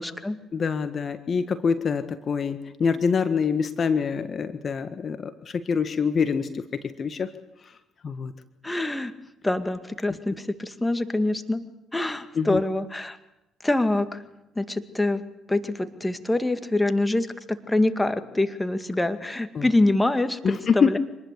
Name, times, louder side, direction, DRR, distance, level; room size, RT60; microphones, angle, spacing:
voice 1, 0.0-0.4 8.6-9.1 9.4-11.6 11.9-13.2 13.6-14.2 14.6-15.2 15.5-21.0, left 2 dB, 15° left, 10 dB, 2.2 m, -25 dB
voice 2, 0.5-7.3 8.0-8.3 12.3-12.6 19.5-19.7 20.4-20.9, left 6 dB, 45° left, 10 dB, 1.7 m, -25 dB
26.0 x 20.0 x 8.4 m, 0.94 s
hypercardioid pair, 55°, 0 cm